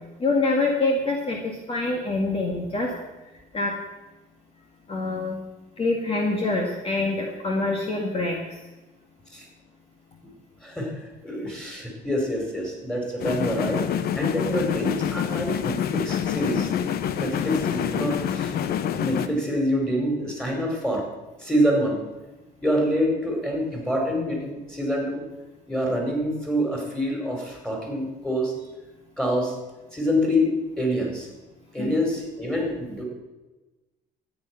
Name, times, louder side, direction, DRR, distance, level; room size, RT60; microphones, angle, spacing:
voice 1, 0.2-2.9 3.5-3.7 4.9-5.4 5.8-8.6 31.8-31.9, left 2 dB, 35° left, 0 dB, 2.1 m, -25 dB
voice 2, 10.6-16.7 17.2-18.6 18.9-21.0 21.4-22.0 22.6-25.2 25.7-28.5 29.2-29.5 29.9-31.3 31.7-33.0, equal, 5° left, 0 dB, 4.5 m, -26 dB
sound 1, 13.2-19.3, left 9 dB, 65° left, 0.9 m, -27 dB
13.5 x 9.4 x 6.1 m, 1.1 s
cardioid pair, 110°, 17 cm